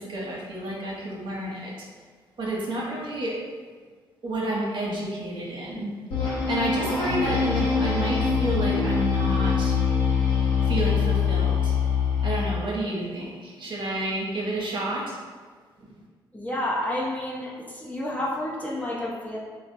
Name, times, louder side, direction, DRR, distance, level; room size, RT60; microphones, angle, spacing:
voice 1, 0.0-1.9 2.4-3.4 4.2-5.9 6.3-9.8 10.7-11.8 12.2-15.2, right 1 dB, 50° right, -4 dB, 0.9 m, -30 dB
sound 1, 6.1-12.6, left 6 dB, 70° left, 0.9 m, -24 dB
voice 2, 16.3-19.4, left 1 dB, 15° left, -4 dB, 0.8 m, -30 dB
3.3 x 2.1 x 2.6 m, 1.5 s
hypercardioid pair, 45°, 10 cm